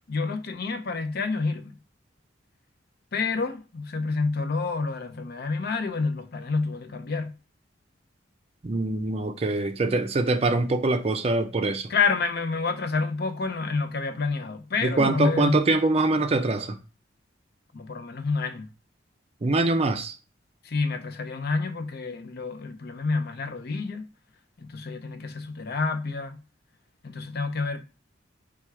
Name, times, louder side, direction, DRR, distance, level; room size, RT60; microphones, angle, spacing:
voice 1, 0.1-1.7 3.1-7.3 11.9-15.6 17.7-18.7 20.6-24.1 24.6-26.4 27.0-27.8, left 4 dB, 55° left, 0.5 m, -28 dB
voice 2, 8.6-11.9 14.8-16.8 19.4-20.1, right 2 dB, 35° right, 0.4 m, -24 dB
4.3 x 2.3 x 4.7 m
head